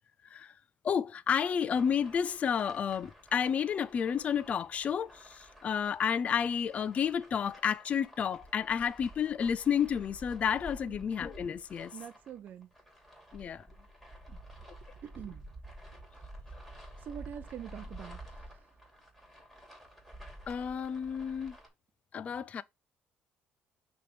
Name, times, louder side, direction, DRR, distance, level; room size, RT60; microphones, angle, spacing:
voice 1, 0.8-11.9 13.3-13.6 20.5-21.6 22.1-22.6, left 7 dB, 35° left, 0.4 m, -31 dB
sound 1, 1.7-21.7, right 1 dB, 5° left, 2.6 m, -51 dB
voice 2, 11.9-12.7 14.3-14.4 15.0-15.5 17.0-18.8, right 9 dB, 50° right, 0.6 m, -45 dB
5.9 x 3.4 x 5.9 m
cardioid pair, 150°, 4 cm